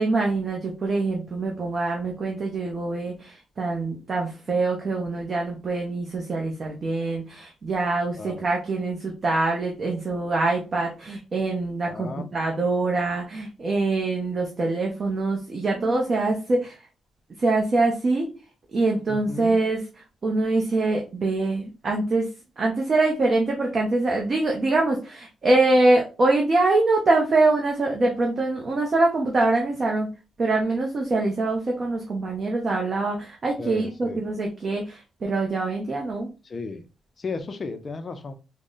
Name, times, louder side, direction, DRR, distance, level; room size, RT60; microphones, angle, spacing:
voice 1, 0.0-16.8 17.4-18.3 18.7-19.8 20.2-22.3 22.6-30.1 30.4-36.3, right 2 dB, 35° right, 0 dB, 0.7 m, -24 dB
voice 2, 11.8-12.3 19.1-19.6 33.6-34.2 36.4-36.8 37.2-38.3, left 4 dB, 30° left, 8 dB, 0.4 m, -34 dB
3.7 x 2.1 x 3.7 m, 0.32 s
cardioid pair, 150°, 0 cm